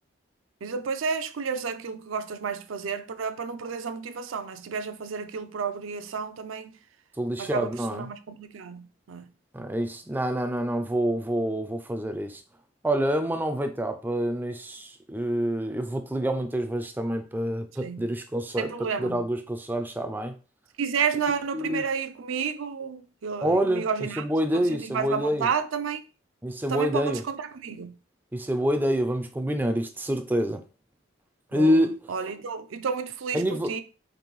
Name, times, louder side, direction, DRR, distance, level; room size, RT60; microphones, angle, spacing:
voice 1, 0.6-6.7 7.4-9.3 17.8-18.1 18.6-19.2 20.8-24.2 24.7-26.0 26.7-28.0 31.5-31.8 32.1-33.8, right 6 dB, 75° right, 0.4 m, -31 dB
voice 2, 7.2-8.1 9.5-12.4 12.8-20.4 21.5-21.9 23.4-25.5 26.4-27.2 28.3-30.6 31.5-32.1 33.3-33.8, equal, 10° right, 0.3 m, -27 dB
5.2 x 2.6 x 3.0 m
head